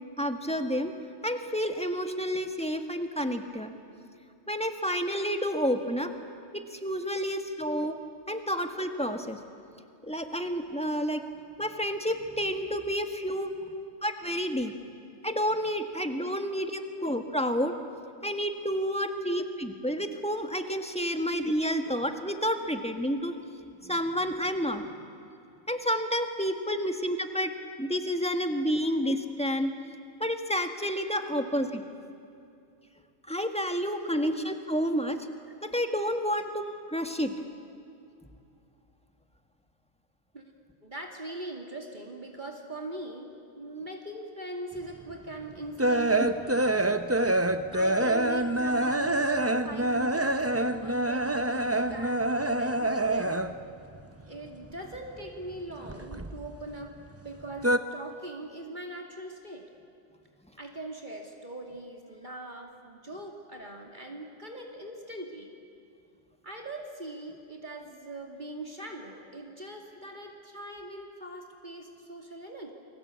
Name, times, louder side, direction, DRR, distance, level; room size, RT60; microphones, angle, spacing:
voice 1, 0.2-0.9 1.2-3.7 4.5-6.1 6.5-7.9 8.3-9.4 10.0-11.2 11.6-13.7 14.0-14.7 15.2-17.8 18.2-23.4 23.8-24.8 25.7-27.5 27.8-29.7 30.2-31.8 33.3-35.3 35.6-37.3 46.2-46.3, equal, 5° left, 6 dB, 1.7 m, -30 dB
voice 2, 7.3-7.9 13.7-13.9 14.7-14.8 16.9-17.1 19.1-19.5 21.2-21.3 26.9-27.0 31.3-31.5 34.1-34.3 40.3-40.5 40.8-43.3 43.6-46.8 47.3-53.5 54.3-57.0 57.2-59.6 60.6-65.5 66.4-72.7, right 1 dB, 40° right, 1 dB, 2.6 m, -41 dB
sound 1, 44.9-53.7 54.0-55.2 55.5-56.8 57.1-57.8, right 1 dB, 15° right, 0.7 m, -26 dB
29.5 x 22.5 x 8.4 m, 2.5 s
omnidirectional pair, 1.2 m